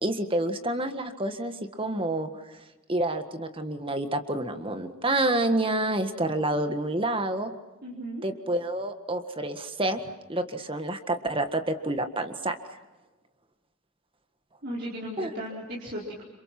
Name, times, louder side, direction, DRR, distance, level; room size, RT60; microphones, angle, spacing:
voice 1, 0.0-2.3 2.9-7.5 8.2-10.0 10.3-12.5 15.2-15.3, right 1 dB, 25° right, 8 dB, 1.7 m, -28 dB
voice 2, 7.8-8.2 14.6-16.2, equal, 50° right, -4 dB, 4.5 m, -36 dB
29.5 x 27.0 x 6.1 m, 1.1 s
head